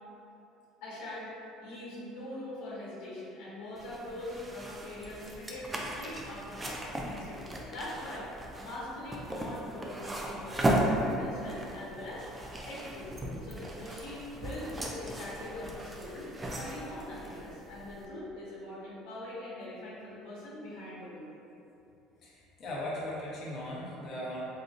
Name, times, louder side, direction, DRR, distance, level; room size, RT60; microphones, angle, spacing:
voice 1, 0.8-1.3 1.6-6.8 7.0-12.2 12.7-16.3 16.5-21.3, left 1 dB, 80° left, -7 dB, 1.1 m, -42 dB
sound 1, 3.8-18.1, right 1 dB, 15° right, 0.3 m, -36 dB
voice 2, 22.2-24.4, left 1 dB, 40° left, -6 dB, 0.8 m, -38 dB
4.1 x 2.5 x 2.4 m, 2.9 s
cardioid pair, 140°, 0 cm